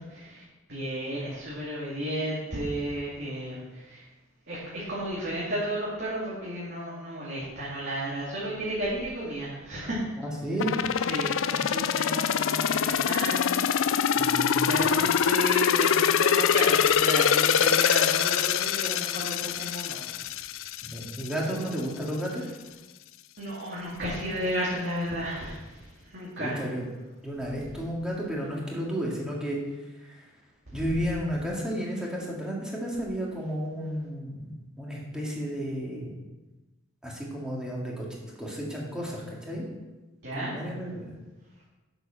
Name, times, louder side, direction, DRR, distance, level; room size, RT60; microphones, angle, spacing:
voice 1, 0.7-4.1 4.5-10.1 11.1-13.6 13.9-14.3 14.7-20.4 23.4-26.6 30.7-30.9 40.2-40.5, equal, 55° right, -8 dB, 2.4 m, -33 dB
voice 2, 10.2-10.8 14.2-14.8 20.9-22.4 26.4-26.8 27.2-29.6 30.0-30.3 30.7-36.2 37.0-38.1 38.4-39.7 40.3-41.1, equal, 5° right, -4 dB, 2.1 m, -32 dB
sound 1, 10.6-21.3 21.7-21.8, left 8 dB, 65° left, 0.4 m, -24 dB
8.0 x 6.8 x 5.7 m, 1.1 s
head